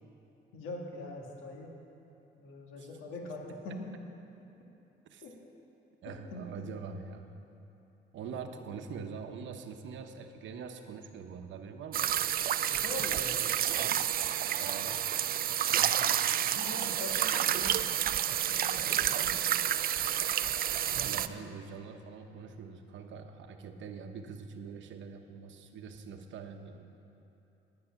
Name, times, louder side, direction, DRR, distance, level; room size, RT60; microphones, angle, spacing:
voice 1, 0.5-1.8 2.4-3.9 5.2-5.3 6.0-6.7 8.3-8.6 12.6-13.5 15.7-16.0 16.4-19.3 20.8-21.4, left 2 dB, 90° left, 1 dB, 1.6 m, -44 dB
voice 2, 6.0-7.3 8.1-12.1 14.6-15.1 20.9-26.9, right 5 dB, 75° right, 6 dB, 0.9 m, -44 dB
sound 1, 11.9-21.3, right 10 dB, 50° right, 0.4 m, -29 dB
10.5 x 9.6 x 5.8 m, 2.9 s
cardioid pair, 90°, 20 cm